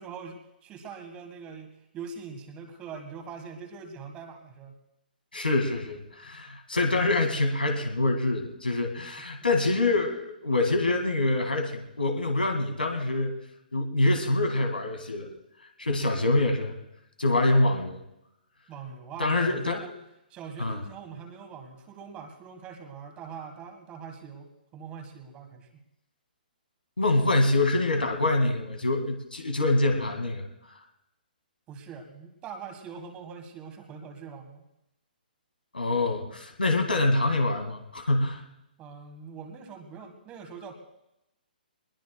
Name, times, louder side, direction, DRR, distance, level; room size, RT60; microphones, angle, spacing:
voice 1, 0.0-4.8 17.4-17.9 18.7-19.9 20.3-25.8 31.7-34.6 38.8-40.7, right 6 dB, 20° right, 5 dB, 1.9 m, -43 dB
voice 2, 5.3-13.3 13.7-15.3 15.8-16.7 17.2-18.0 19.2-19.8 20.6-20.8 27.0-30.7 35.7-38.4, left 2 dB, 80° left, 4 dB, 2.2 m, -25 dB
23.5 x 20.5 x 2.3 m, 0.87 s
figure-of-eight pair, 125°, 5 cm